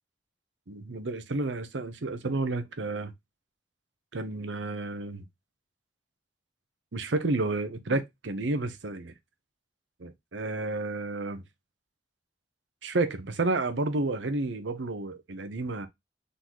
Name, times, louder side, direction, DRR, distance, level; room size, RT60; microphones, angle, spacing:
voice 1, 0.7-3.1 4.1-5.2 6.9-9.1 10.0-11.4 12.8-15.9, right 2 dB, 80° right, 0.8 m, -31 dB
3.9 x 3.9 x 3.0 m
head